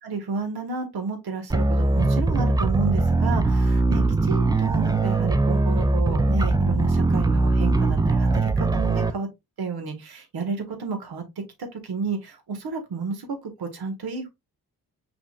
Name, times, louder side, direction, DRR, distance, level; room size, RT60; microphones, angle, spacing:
voice 1, 0.0-9.3 9.6-11.2 11.7-13.3 13.6-14.3, right 4 dB, 85° right, 1.7 m, -31 dB
sound 1, 1.5-9.1, right 2 dB, 10° right, 0.4 m, -21 dB
5.8 x 3.9 x 2.4 m
cardioid pair, 80°, 37 cm